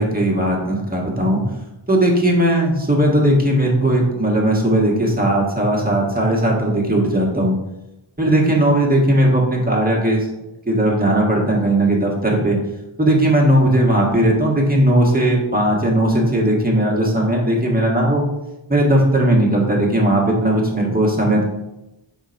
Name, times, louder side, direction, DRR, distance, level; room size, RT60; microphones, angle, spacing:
voice 1, 0.0-1.4 1.9-7.5 8.2-10.3 10.7-12.6 13.0-18.2 18.7-21.4, right 1 dB, 20° right, -2 dB, 1.6 m, -17 dB
5.1 x 3.7 x 5.1 m, 0.95 s
wide cardioid pair, 65°, 48 cm